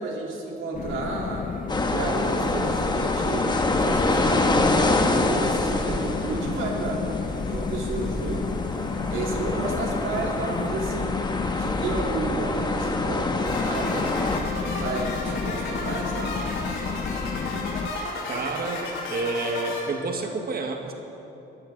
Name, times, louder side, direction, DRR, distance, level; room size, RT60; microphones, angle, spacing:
voice 1, 0.0-1.5 1.8-7.0 7.5-8.7 9.1-11.2 11.6-14.2 14.8-16.4, right 3 dB, 80° right, -2 dB, 3.6 m, -32 dB
sound 1, 0.7-17.9, left 5 dB, 45° left, 0.8 m, -31 dB
sound 2, 1.7-14.4, left 2 dB, 20° left, 1.3 m, -26 dB
sound 3, 13.4-19.8, left 3 dB, 80° left, 4.3 m, -33 dB
voice 2, 18.3-20.9, right 3 dB, 50° right, 3 dB, 1.6 m, -29 dB
23.0 x 14.5 x 4.0 m, 2.9 s
cardioid pair, 90°, 20 cm